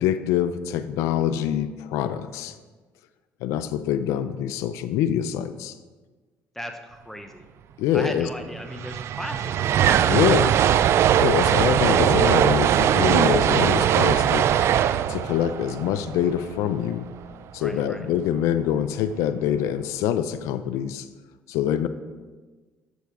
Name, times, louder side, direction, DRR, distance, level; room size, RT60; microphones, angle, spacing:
voice 1, 0.0-2.6 3.4-5.7 7.8-8.3 10.1-10.5 11.2-14.5 15.1-17.1 17.5-21.1 21.5-21.9, left 10 dB, 80° left, 11 dB, 0.4 m, -25 dB
voice 2, 6.5-7.4 7.9-10.2 15.0-15.3 17.6-18.1, left 1 dB, 5° left, 6 dB, 0.7 m, -38 dB
sound 1, 8.3-8.4 8.5-16.8, right 10 dB, 60° right, 0.3 m, -20 dB
7.0 x 6.8 x 4.6 m, 1.4 s
supercardioid pair, 85°, 5 cm